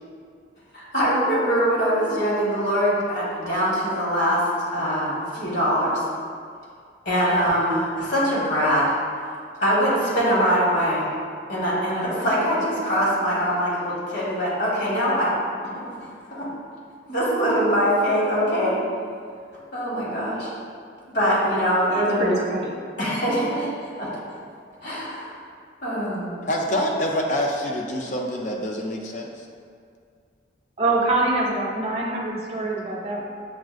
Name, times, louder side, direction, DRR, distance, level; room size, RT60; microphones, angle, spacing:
voice 1, 0.7-4.4 4.7-6.0 7.0-8.9 9.6-11.0 11.5-15.3 15.7-16.5 17.1-18.8 19.7-20.5 21.1-22.3 23.0-24.2 24.8-25.4 25.8-26.3, equal, 65° left, -7 dB, 1.2 m, -23 dB
voice 2, 21.9-22.8 30.8-33.2, right 2 dB, 30° right, -4 dB, 0.4 m, -25 dB
voice 3, 26.5-29.5, equal, 40° left, 0 dB, 0.3 m, -26 dB
7.1 x 2.4 x 2.4 m, 2.2 s
head